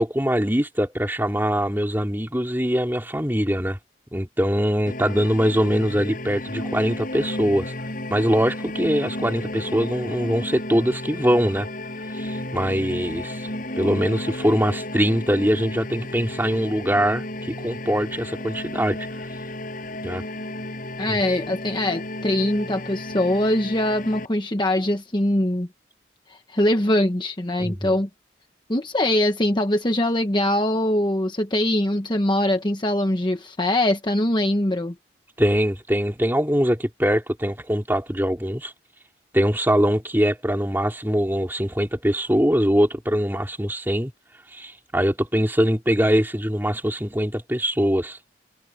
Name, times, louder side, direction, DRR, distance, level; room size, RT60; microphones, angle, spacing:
voice 1, 0.0-3.8 4.1-7.7 8.1-11.7 12.1-13.5 13.8-19.1 20.0-20.2 21.1-21.2 27.6-28.0 35.4-38.7 39.3-44.1 44.5-48.3, equal, 10° right, 4.1 m, -22 dB
sound 1, 4.9-24.3, left 1 dB, 45° left, 7.3 m, -33 dB
voice 2, 21.0-25.7 26.3-28.1 28.7-34.9, left 1 dB, 25° left, 1.1 m, -22 dB
head